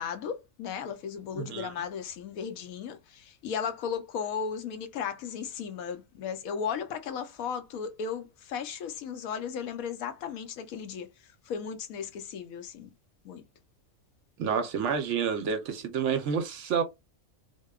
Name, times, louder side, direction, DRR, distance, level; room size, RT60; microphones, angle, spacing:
voice 1, 0.0-11.1 11.5-12.9 13.2-13.4, left 7 dB, 80° left, 1.0 m, -35 dB
voice 2, 1.3-1.7 14.4-16.8, right 6 dB, 65° right, 0.8 m, -29 dB
2.7 x 2.1 x 2.2 m
omnidirectional pair, 1.5 m